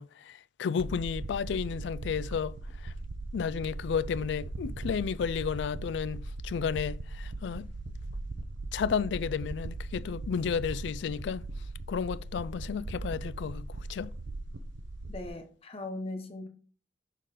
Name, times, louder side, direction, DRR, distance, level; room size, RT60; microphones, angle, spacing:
voice 1, 0.0-2.5 2.8-2.9 3.3-7.7 8.7-11.5 11.9-13.6 13.9-14.1, left 6 dB, 65° left, 0.3 m, -32 dB
sound 1, 0.8-15.3, right 2 dB, 85° right, 0.7 m, -39 dB
voice 2, 15.1-16.5, left 2 dB, 30° left, 0.8 m, -39 dB
6.5 x 3.8 x 4.8 m
head